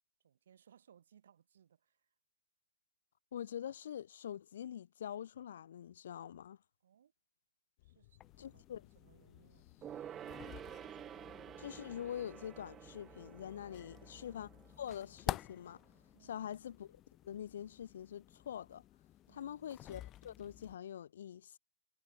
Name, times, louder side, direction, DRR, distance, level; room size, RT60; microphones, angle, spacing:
voice 1, 0.2-2.1 6.8-7.1 7.8-8.6 8.9-10.6 13.8-14.3 16.1-16.5 19.3-19.7, right 8 dB, 75° right, 5.6 m, -67 dB
voice 2, 3.3-6.6 8.4-8.8 11.6-14.5 14.8-15.8 16.2-18.8 19.3-21.6, left 9 dB, 65° left, 0.6 m, -45 dB
sound 1, 7.8-11.7, left 18 dB, 45° left, 5.7 m, -67 dB
sound 2, 8.2-20.8, left 13 dB, 20° left, 0.7 m, -50 dB
Gong, 9.8-15.7 16.0-16.1, right 10 dB, 15° right, 2.0 m, -51 dB
hypercardioid pair, 155°, 0 cm